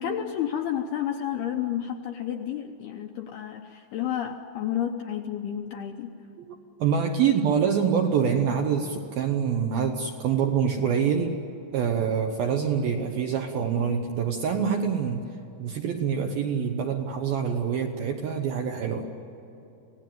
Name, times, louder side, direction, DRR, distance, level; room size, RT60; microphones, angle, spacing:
voice 1, 0.0-6.1, left 10 dB, 75° left, 3 dB, 2.3 m, -31 dB
voice 2, 6.8-11.4 11.7-15.3 15.6-19.1, right 7 dB, 70° right, 3 dB, 2.3 m, -25 dB
27.0 x 18.0 x 9.2 m, 2.9 s
omnidirectional pair, 5.7 m